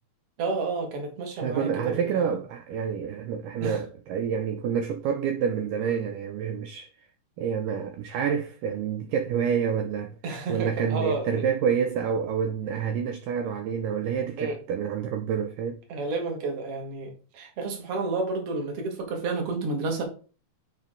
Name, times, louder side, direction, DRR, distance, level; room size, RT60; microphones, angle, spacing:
voice 1, 0.4-2.3 3.6-3.8 10.2-11.4 14.4-14.6 15.9-20.0, right 3 dB, 50° right, 2.1 m, -31 dB
voice 2, 1.4-6.9 7.4-10.2 10.5-15.8, right 7 dB, 80° right, 2.0 m, -28 dB
9.2 x 3.7 x 3.7 m
omnidirectional pair, 4.2 m